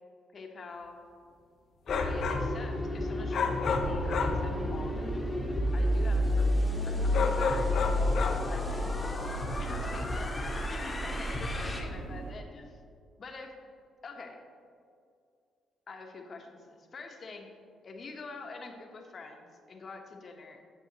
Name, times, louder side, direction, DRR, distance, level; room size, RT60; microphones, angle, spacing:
voice 1, 0.3-1.0 1.9-5.1 5.7-6.5 6.8-7.7 8.5-8.9 9.6-12.8 13.2-13.6 14.0-14.4 15.9-17.5 17.8-20.7, left 3 dB, 45° left, 3 dB, 1.1 m, -45 dB
sound 1, 1.9-2.5 3.3-4.5 7.1-8.5, left 4 dB, 65° left, 0.7 m, -31 dB
sound 2, 1.9-11.8, left 1 dB, 20° left, 1.2 m, -31 dB
sound 3, 3.7-12.3, right 4 dB, 70° right, 1.4 m, -40 dB
9.2 x 7.3 x 3.0 m, 2.3 s
cardioid pair, 90°, 0 cm